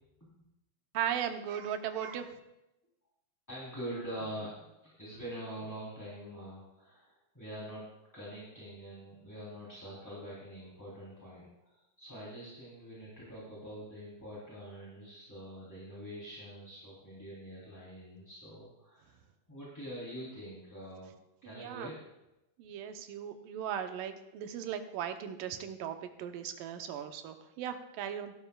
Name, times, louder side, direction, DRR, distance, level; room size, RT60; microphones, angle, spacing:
voice 1, 0.9-2.4 21.4-21.9 22.6-28.3, right 9 dB, 75° right, 7 dB, 2.3 m, -37 dB
voice 2, 3.5-7.8 8.1-19.2 19.5-21.1 21.4-22.0, equal, 5° left, -8 dB, 2.5 m, -45 dB
17.5 x 11.5 x 2.3 m, 0.92 s
omnidirectional pair, 4.1 m